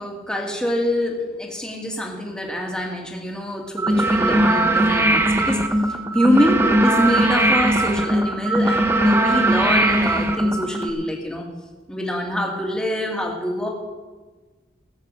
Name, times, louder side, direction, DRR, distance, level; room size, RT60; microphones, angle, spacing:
voice 1, 0.0-5.6 6.1-11.4 11.9-13.7, left 1 dB, 5° left, 0 dB, 1.9 m, -25 dB
sound 1, 3.8-10.9, right 1 dB, 15° right, 0.8 m, -19 dB
17.0 x 6.6 x 7.5 m, 1.3 s
head